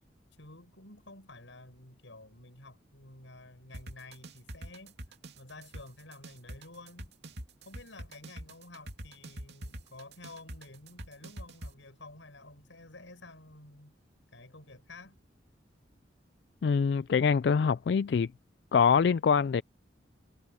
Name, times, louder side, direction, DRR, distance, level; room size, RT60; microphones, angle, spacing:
voice 1, 0.4-4.9 5.3-7.1 7.6-13.9 14.3-15.2, left 2 dB, 90° left, 6.8 m, -51 dB
sound 1, 3.7-11.7, right 1 dB, 65° right, 2.8 m, -43 dB
voice 2, 16.6-18.3 18.7-19.6, left 6 dB, 60° left, 0.3 m, -24 dB
head